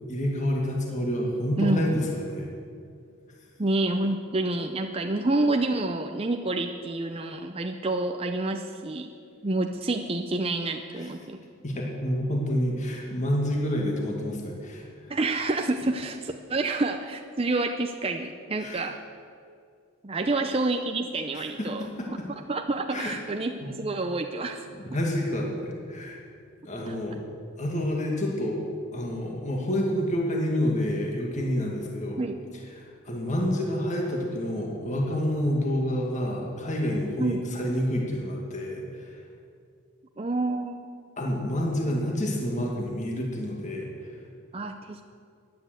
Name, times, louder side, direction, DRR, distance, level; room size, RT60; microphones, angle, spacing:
voice 1, 0.1-2.5 11.6-15.1 18.6-18.9 21.3-22.1 22.9-23.2 24.7-26.2 26.6-27.2 27.6-28.7 28.9-32.2 32.7-39.2 41.2-44.2, equal, 35° left, -1 dB, 2.2 m, -28 dB
voice 2, 1.6-1.9 3.6-9.1 9.4-11.4 15.1-19.0 20.0-21.9 22.3-24.7 26.8-27.0 32.2-32.4 37.2-37.4 40.2-40.8 44.5-45.0, right 2 dB, 25° right, 5 dB, 0.6 m, -28 dB
15.5 x 10.5 x 7.9 m, 2.3 s
head